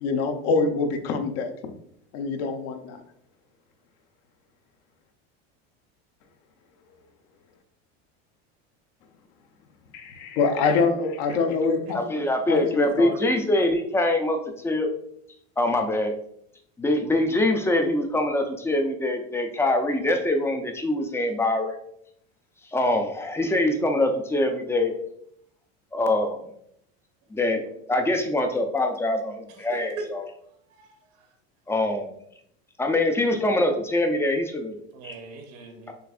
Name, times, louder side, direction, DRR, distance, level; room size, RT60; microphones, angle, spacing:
voice 1, 0.0-1.5 2.1-3.0 9.9-12.1 12.5-13.3, left 4 dB, 65° left, 6 dB, 0.7 m, -25 dB
voice 2, 11.9-14.9 15.6-16.1 16.8-21.8 22.7-24.9 25.9-26.5 27.3-27.6 27.9-30.2 31.7-32.1 32.8-34.8 35.0-35.1, left 1 dB, 10° left, 5 dB, 0.3 m, -24 dB
voice 3, 29.5-30.1 30.7-31.3 34.9-35.9, right 3 dB, 75° right, 3 dB, 1.0 m, -40 dB
6.6 x 2.5 x 2.4 m, 0.71 s
supercardioid pair, 130°, 33 cm